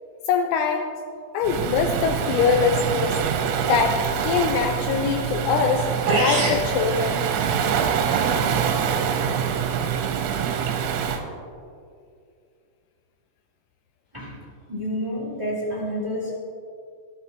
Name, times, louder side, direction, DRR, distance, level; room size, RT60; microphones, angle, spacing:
voice 1, 0.3-1.0 1.3-3.2 3.7-5.9 6.2-7.3, left 6 dB, 80° left, 5 dB, 2.9 m, -23 dB
Waves surf, 1.4-11.2, right 7 dB, 80° right, 3.6 m, -25 dB
sound 1, 6.1-6.7, right 1 dB, 55° right, 4.4 m, -22 dB
voice 2, 14.7-16.3, equal, 10° right, -5 dB, 2.0 m, -29 dB
26.5 x 8.9 x 3.1 m, 2.3 s
omnidirectional pair, 6.0 m